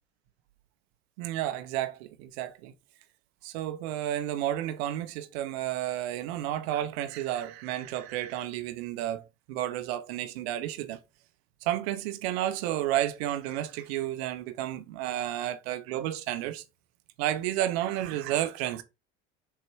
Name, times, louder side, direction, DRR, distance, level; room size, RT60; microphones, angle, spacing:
voice 1, 1.2-2.7 3.4-9.2 9.5-11.0 11.6-16.6 17.2-18.8, right 12 dB, 60° right, 1.0 m, -31 dB
6.7 x 3.0 x 4.6 m
figure-of-eight pair, 65°, 36 cm